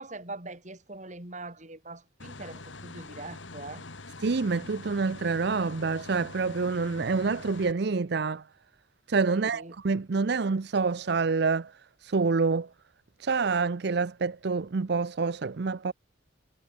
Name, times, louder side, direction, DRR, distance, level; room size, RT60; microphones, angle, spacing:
voice 1, 0.0-3.8 9.3-9.7, right 2 dB, 40° right, 3.8 m, -42 dB
sound 1, 2.2-7.7, left 3 dB, 75° left, 2.9 m, -44 dB
voice 2, 4.2-8.4 9.1-12.7 13.2-15.9, right 4 dB, 55° right, 0.5 m, -27 dB
head